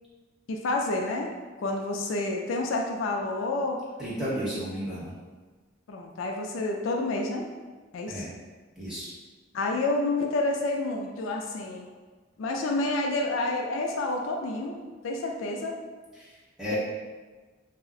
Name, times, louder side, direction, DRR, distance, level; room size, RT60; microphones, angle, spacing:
voice 1, 0.5-1.3 1.6-3.8 4.5-4.6 5.9-7.5 7.9-8.2 9.5-11.9 12.4-15.8, left 2 dB, 75° left, 2 dB, 0.3 m, -29 dB
voice 2, 4.0-5.1 8.1-8.3 8.8-9.1 16.1-16.8, equal, ahead, -10 dB, 0.8 m, -33 dB
2.4 x 2.0 x 3.6 m, 1.4 s
head